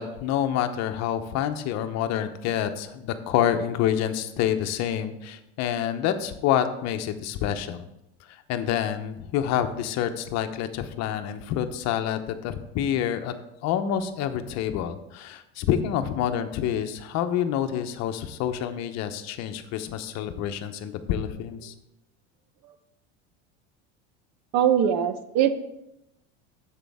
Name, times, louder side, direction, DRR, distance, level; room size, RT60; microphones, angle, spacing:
voice 1, 0.0-7.8 8.5-13.3 13.6-21.7, left 10 dB, 55° left, 9 dB, 0.9 m, -27 dB
voice 2, 24.5-25.5, right 9 dB, 50° right, 11 dB, 0.9 m, -23 dB
10.0 x 7.6 x 3.6 m, 0.86 s
supercardioid pair, 100°, 33 cm